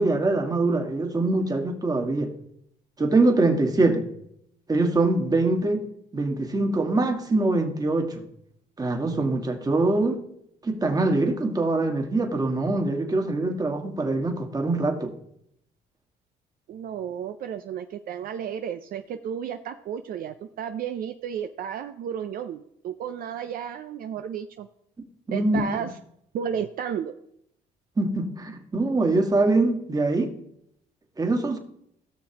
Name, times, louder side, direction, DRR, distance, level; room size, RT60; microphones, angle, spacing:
voice 1, 0.0-2.3 3.0-4.1 4.7-5.8 6.1-8.2 8.8-10.2 10.6-15.1 25.3-25.6 28.0-30.3 31.2-31.6, right 2 dB, 25° right, 4 dB, 1.6 m, -23 dB
voice 2, 16.7-24.7 25.3-26.0 26.3-27.1, right 8 dB, 65° right, 8 dB, 0.5 m, -33 dB
18.0 x 6.4 x 2.9 m, 0.74 s
cardioid pair, 85°, 16 cm